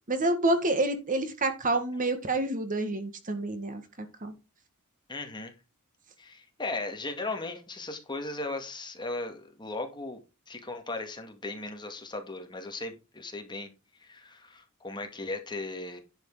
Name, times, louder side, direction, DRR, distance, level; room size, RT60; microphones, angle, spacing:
voice 1, 0.1-3.8 4.2-4.3, right 2 dB, 35° right, 1.7 m, -28 dB
voice 2, 5.1-5.5 6.2-10.2 10.5-13.7 14.0-16.0, left 2 dB, 20° left, 2.0 m, -37 dB
10.5 x 6.4 x 4.8 m
head